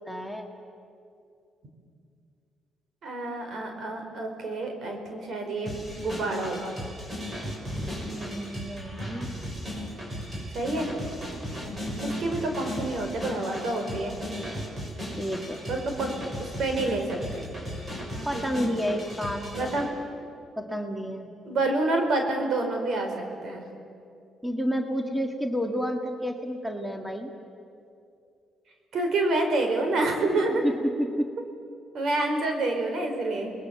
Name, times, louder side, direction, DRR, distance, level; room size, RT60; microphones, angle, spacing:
voice 1, 0.1-0.5 8.1-9.3 11.9-12.6 15.2-15.6 18.3-19.7 20.6-21.3 24.4-27.3 30.6-30.7 31.0-31.3, equal, ahead, 4 dB, 1.9 m, -30 dB
voice 2, 3.0-6.8 10.5-10.9 12.0-14.2 15.7-16.1 16.4-17.5 18.1-18.7 19.6-19.9 21.4-23.7 28.9-30.6 31.9-33.5, right 2 dB, 65° right, 4 dB, 4.8 m, -28 dB
sound 1, 5.7-19.9, equal, 30° right, 7.1 m, -36 dB
29.5 x 21.0 x 7.2 m, 2.5 s
cardioid pair, 90°, 0 cm